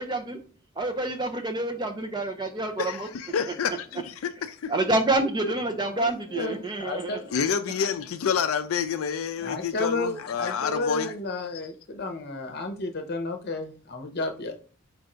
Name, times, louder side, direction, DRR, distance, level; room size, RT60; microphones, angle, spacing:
voice 1, 0.0-0.4 0.8-3.1 4.7-7.2, right 2 dB, 20° right, 0.5 m, -27 dB
voice 2, 2.8-5.0 5.4-5.5 7.3-11.1, left 7 dB, 65° left, 0.4 m, -29 dB
voice 3, 5.9-7.2 9.4-14.5, left 3 dB, 45° left, 0.8 m, -32 dB
4.5 x 2.6 x 4.3 m
head